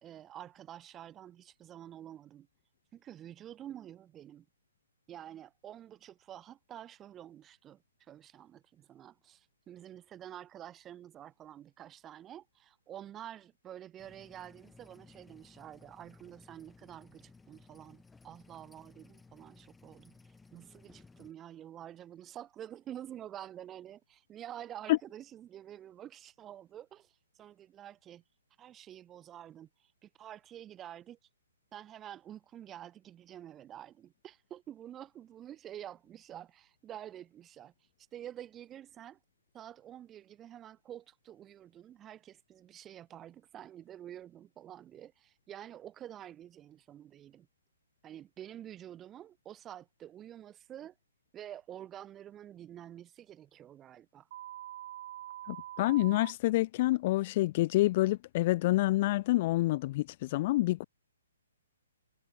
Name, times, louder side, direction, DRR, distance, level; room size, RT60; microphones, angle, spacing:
voice 1, 0.0-2.5 2.9-4.5 5.1-20.2 20.5-27.1 27.4-28.2 28.6-31.2 31.7-37.7 38.1-39.2 39.5-47.5 48.0-50.9 51.3-54.3, right 11 dB, 15° right, 1.9 m, -48 dB
sound 1, 14.0-21.3, left 4 dB, 5° left, 5.2 m, -59 dB
sound 2, 54.3-56.3, right 12 dB, 40° right, 3.6 m, -44 dB
voice 2, 55.5-60.8, left 17 dB, 35° left, 0.3 m, -27 dB
figure-of-eight pair, 125°, 0 cm